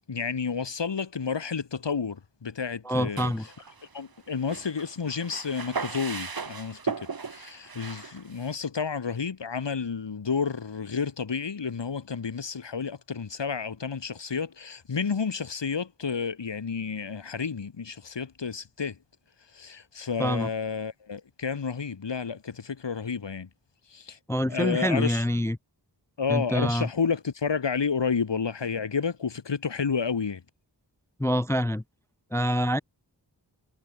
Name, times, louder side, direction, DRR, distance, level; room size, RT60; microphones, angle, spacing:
voice 1, 0.1-3.5 3.9-19.0 19.5-23.5 23.9-24.2 24.5-25.3 26.2-30.4, left 5 dB, 85° left, 1.9 m, -31 dB
voice 2, 2.9-3.4 20.2-20.5 24.3-25.6 26.3-26.9 31.2-31.8 32.3-32.8, equal, 5° left, 0.4 m, -26 dB
sound 1, 3.2-4.2 4.5-8.6, right 5 dB, 55° right, 1.6 m, -37 dB
wide cardioid pair, 50°, 43 cm